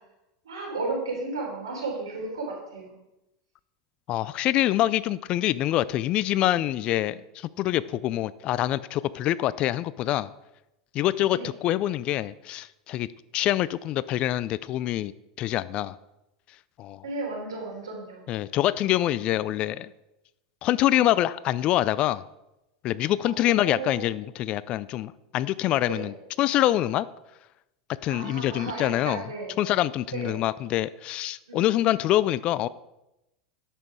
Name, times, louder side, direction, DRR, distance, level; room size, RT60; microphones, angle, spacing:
voice 1, 0.5-2.9 11.3-11.5 17.0-18.2 23.2-24.0 25.8-26.1 28.1-29.6 30.1-30.4 31.5-32.0, right 3 dB, 85° right, -1 dB, 3.5 m, -34 dB
voice 2, 4.1-10.3 10.9-13.1 13.3-15.1 15.4-16.0 16.8-17.0 18.3-19.9 20.6-22.2 22.8-27.1 28.0-29.2 29.6-32.7, left 14 dB, 45° left, 18 dB, 0.4 m, -25 dB
9.8 x 7.5 x 4.7 m, 0.92 s
hypercardioid pair, 90°, 2 cm